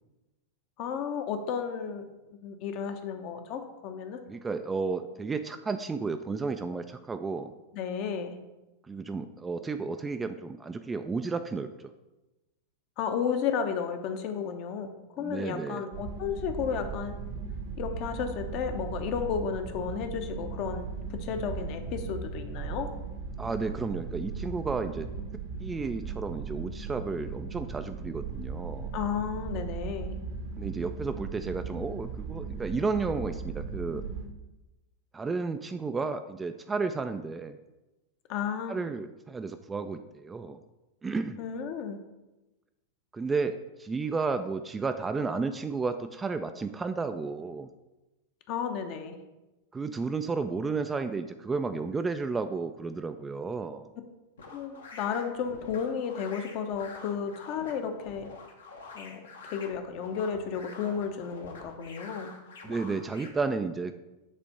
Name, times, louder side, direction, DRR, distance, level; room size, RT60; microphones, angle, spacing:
voice 1, 0.8-2.2 2.4-4.2 7.7-8.4 13.0-17.2 17.8-20.9 21.1-22.9 28.9-30.2 38.3-38.8 41.4-42.0 48.5-49.2 54.5-58.3 58.9-62.3, left 7 dB, 40° left, 6 dB, 0.8 m, -33 dB
voice 2, 4.3-7.5 8.9-11.9 15.2-15.8 23.4-25.1 25.6-28.9 30.6-34.0 35.1-37.6 38.7-40.6 41.0-41.4 43.1-47.7 49.7-53.9 62.6-63.9, right 4 dB, 15° right, 8 dB, 0.3 m, -32 dB
sound 1, 15.9-34.3, right 5 dB, 55° right, 0.9 m, -37 dB
sound 2, 54.4-63.3, left 3 dB, 65° left, 1.0 m, -47 dB
7.5 x 3.4 x 5.2 m, 1.0 s
figure-of-eight pair, 90°, 0 cm